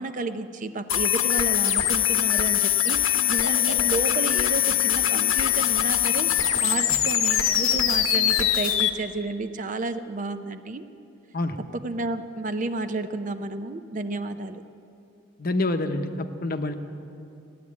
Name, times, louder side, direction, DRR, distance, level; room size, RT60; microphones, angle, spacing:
voice 1, 0.0-10.8 11.7-14.6, right 2 dB, 40° right, 9 dB, 0.6 m, -31 dB
sound 1, 0.9-8.9, left 11 dB, 75° left, 1.0 m, -22 dB
voice 2, 15.4-16.7, left 2 dB, 45° left, 8 dB, 0.8 m, -27 dB
15.5 x 10.5 x 8.5 m, 2.7 s
head